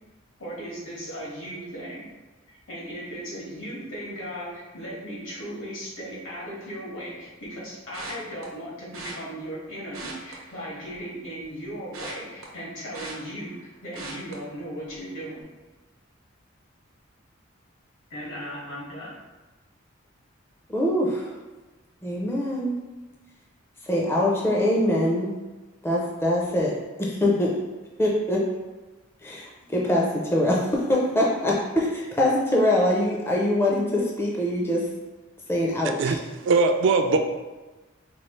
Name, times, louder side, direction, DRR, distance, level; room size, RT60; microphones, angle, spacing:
voice 1, 0.4-2.1 2.5-15.4 18.1-19.1, equal, 75° left, -6 dB, 1.4 m, -37 dB
sound 1, 7.9-8.4 8.9-9.1 9.8-11.1 11.4-13.6 13.9-14.3 14.8-15.1 15.4-15.5, right 3 dB, 85° right, 0.9 m, -41 dB
voice 2, 20.7-21.3 22.0-22.8 23.9-25.3 25.8-26.7 27.0-27.5 28.0-28.4 29.2-34.8 35.5-36.2, left 1 dB, 10° left, -3 dB, 0.4 m, -23 dB
voice 3, 36.0-37.2, right 4 dB, 60° right, 6 dB, 0.3 m, -21 dB
4.4 x 2.3 x 3.1 m, 1.2 s
head